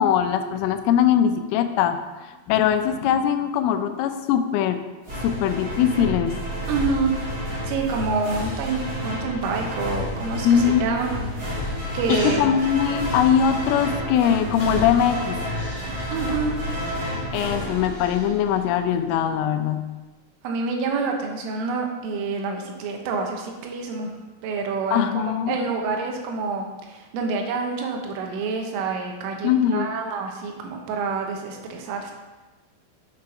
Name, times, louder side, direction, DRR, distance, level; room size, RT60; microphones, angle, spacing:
voice 1, 0.0-4.8 5.2-6.4 10.4-11.0 12.1-15.4 17.3-19.8 24.9-25.6 29.4-29.9, left 9 dB, 85° left, 8 dB, 3.1 m, -21 dB
sound 1, 5.0-18.7, equal, 30° right, 1.8 m, -30 dB
voice 2, 6.7-7.1 7.6-11.2 11.9-12.6 16.1-16.6 20.4-24.1 24.4-32.1, right 4 dB, 80° right, 2 dB, 3.6 m, -27 dB
Breathing, 12.1-14.1 14.5-18.7 19.1-19.2, left 2 dB, 40° left, 2.3 m, -40 dB
8.5 x 6.2 x 5.8 m, 1.2 s
omnidirectional pair, 5.7 m